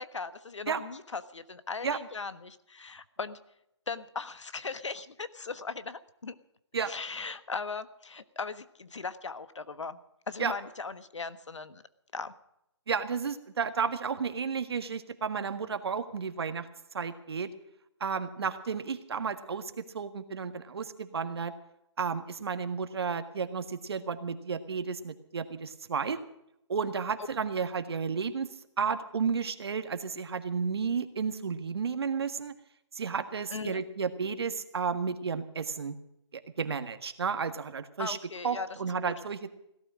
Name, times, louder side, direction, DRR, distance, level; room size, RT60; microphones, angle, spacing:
voice 1, 0.0-3.4 3.9-6.3 6.9-10.0 10.3-11.8 12.1-12.3 33.5-33.8 38.0-38.7 39.0-39.1, left 4 dB, 90° left, 13 dB, 1.3 m, -38 dB
voice 2, 12.9-16.7 16.9-17.5 18.0-21.5 22.0-26.2 26.7-28.5 28.8-32.5 32.9-35.9 36.3-38.2 38.4-39.5, right 6 dB, 60° right, 9 dB, 1.7 m, -32 dB
17.5 x 12.5 x 6.2 m, 0.80 s
hypercardioid pair, 165°, 15 cm